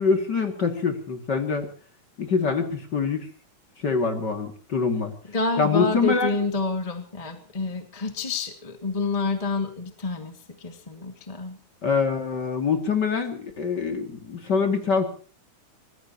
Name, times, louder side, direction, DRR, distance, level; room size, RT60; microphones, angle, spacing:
voice 1, 0.0-1.7 2.2-3.3 3.8-5.1 5.6-6.3 11.8-15.1, left 5 dB, 35° left, 5 dB, 2.6 m, -24 dB
voice 2, 5.2-11.6, left 3 dB, 15° left, 6 dB, 1.6 m, -28 dB
25.0 x 19.5 x 3.0 m, 0.41 s
omnidirectional pair, 3.7 m